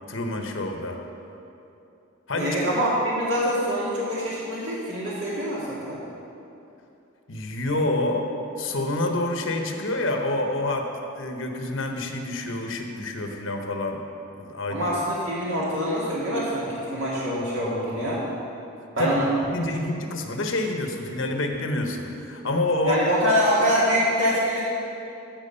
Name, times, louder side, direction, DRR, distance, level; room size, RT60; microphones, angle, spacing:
voice 1, 0.1-1.0 2.3-2.6 7.3-14.0 14.4-14.9 19.0-19.2 19.5-23.0, left 2 dB, 65° left, 4 dB, 1.0 m, -27 dB
voice 2, 2.4-6.0 14.7-18.2 19.0-19.3 22.8-24.6, equal, 60° right, -7 dB, 2.0 m, -25 dB
15.0 x 6.1 x 5.5 m, 2.8 s
head